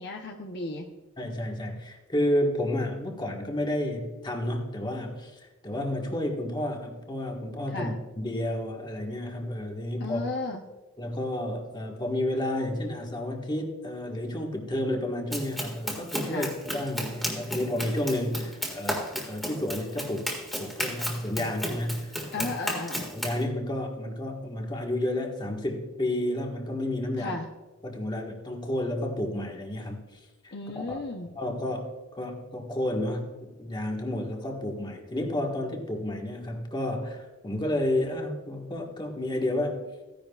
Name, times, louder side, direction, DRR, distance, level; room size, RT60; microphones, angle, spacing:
voice 1, 0.0-1.0 7.7-8.0 10.0-10.6 16.3-16.6 22.3-23.1 27.2-27.5 30.5-31.3, left 2 dB, 55° left, 2 dB, 0.8 m, -34 dB
voice 2, 1.2-10.2 11.0-22.5 23.1-27.4 27.8-30.0 30.4-31.0 31.3-39.9, left 1 dB, 25° left, 1 dB, 1.5 m, -31 dB
Run, 15.3-23.4, equal, ahead, 1.8 m, -34 dB
15.0 x 10.5 x 2.4 m, 1.2 s
head